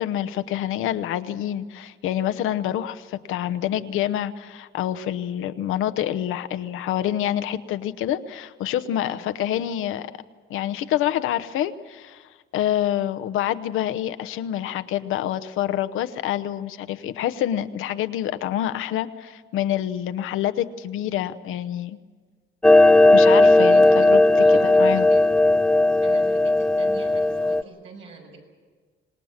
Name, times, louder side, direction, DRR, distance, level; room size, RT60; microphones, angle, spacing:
voice 1, 0.0-10.1 10.5-22.0 23.1-24.2 24.6-25.1, left 11 dB, 90° left, 11 dB, 0.9 m, -27 dB
voice 2, 8.9-9.3 23.4-24.1 24.4-25.2 26.0-28.4, right 4 dB, 75° right, 0 dB, 6.6 m, -43 dB
Clock, 22.6-27.6, left 2 dB, 5° left, 0.6 m, -16 dB
26.0 x 20.0 x 7.4 m, 1.5 s
cardioid pair, 100°, 20 cm